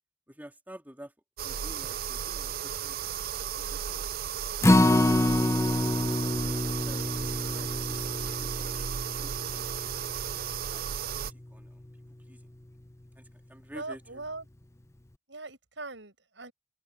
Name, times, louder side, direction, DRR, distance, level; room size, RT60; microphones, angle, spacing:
voice 1, 0.3-1.1 1.4-3.0 3.7-4.0 6.8-8.7 9.1-9.8 10.7-11.8 12.3-12.5 13.1-14.2, equal, 10° right, 3.0 m, -51 dB
sound 1, 1.4-11.3, right 9 dB, 55° right, 0.4 m, -34 dB
Acoustic guitar, 4.6-10.9 11.3-11.4 11.8-11.9, left 1 dB, 15° left, 0.6 m, -27 dB
voice 2, 13.7-14.5 15.3-16.5, right 3 dB, 80° right, 6.5 m, -40 dB
open air
head